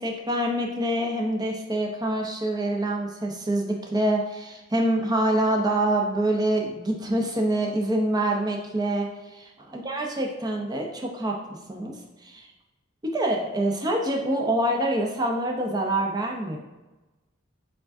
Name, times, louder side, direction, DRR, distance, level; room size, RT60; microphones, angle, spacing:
voice 1, 0.0-12.0 12.2-12.5 13.0-16.6, right 1 dB, 20° right, 1 dB, 0.5 m, -26 dB
4.7 x 3.7 x 2.5 m, 1.1 s
head